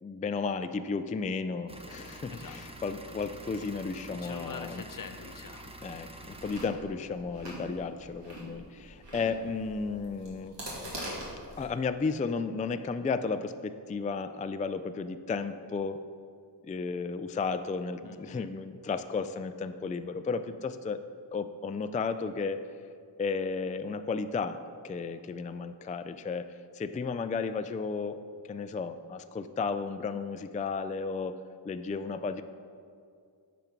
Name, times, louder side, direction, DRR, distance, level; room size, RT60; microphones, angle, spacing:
voice 1, 0.0-4.8 5.8-10.6 11.6-16.0 16.6-21.0 21.3-22.6 23.2-24.6 24.8-26.5 26.7-28.2 28.5-31.4 31.6-32.4, left 4 dB, 20° left, 10 dB, 0.3 m, -33 dB
sound 1, 1.7-6.7, right 1 dB, 15° right, 0.7 m, -47 dB
voice 2, 2.3-2.8 4.1-5.8 18.0-18.5, left 5 dB, 50° left, 8 dB, 0.7 m, -45 dB
Chewing mastication, 6.2-11.7, equal, 75° right, 2.5 m, -43 dB
9.0 x 5.2 x 5.9 m, 2.3 s
wide cardioid pair, 55°, 43 cm